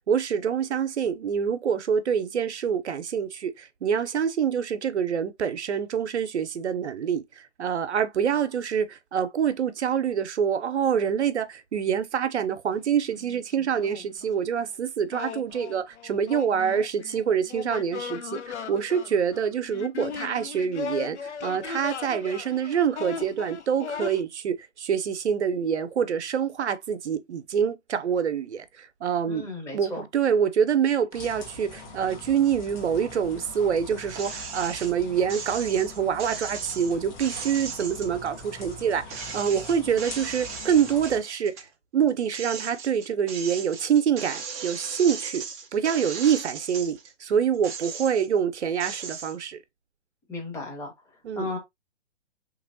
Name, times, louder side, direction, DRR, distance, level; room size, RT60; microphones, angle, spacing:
voice 1, 0.1-29.5 29.7-41.5 41.9-45.4 45.7-49.6 51.2-51.5, right 7 dB, 70° right, 0.7 m, -26 dB
sound 1, 12.7-12.8 13.1-14.4 15.1-24.2, left 6 dB, 70° left, 0.6 m, -37 dB
voice 2, 29.3-30.0 50.3-50.9 51.4-51.6, left 2 dB, 10° left, 0.8 m, -34 dB
sound 2, 31.1-41.2, left 2 dB, 40° left, 1.4 m, -43 dB
sound 3, 34.1-34.9 35.3-38.8 39.1-41.7 42.1-47.1 47.5-48.4 48.8-49.3, right 5 dB, 15° right, 0.4 m, -37 dB
3.2 x 3.0 x 2.5 m
figure-of-eight pair, 125°, 35 cm